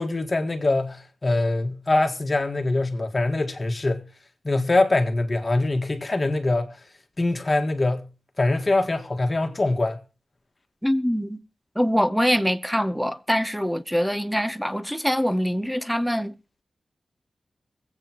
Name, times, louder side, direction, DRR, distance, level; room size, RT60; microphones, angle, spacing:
voice 1, 0.0-4.1 4.4-6.8 7.2-8.1 8.4-10.0, left 2 dB, 35° left, 1.8 m, -23 dB
voice 2, 10.8-11.4 11.8-16.3, equal, ahead, 0.9 m, -24 dB
24.0 x 8.5 x 3.0 m
wide cardioid pair, 90°, 0 cm